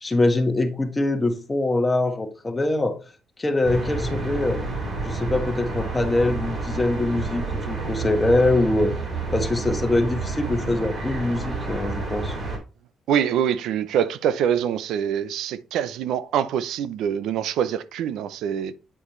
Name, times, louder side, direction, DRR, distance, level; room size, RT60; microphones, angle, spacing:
voice 1, 0.0-3.0 3.4-4.6 5.0-8.9 9.3-12.4, left 2 dB, 20° left, 1.5 m, -23 dB
sound 1, 3.6-12.6, right 3 dB, 45° right, 3.1 m, -29 dB
voice 2, 13.1-18.7, right 9 dB, 85° right, 0.5 m, -24 dB
8.8 x 4.9 x 3.1 m
cardioid pair, 90°, 0 cm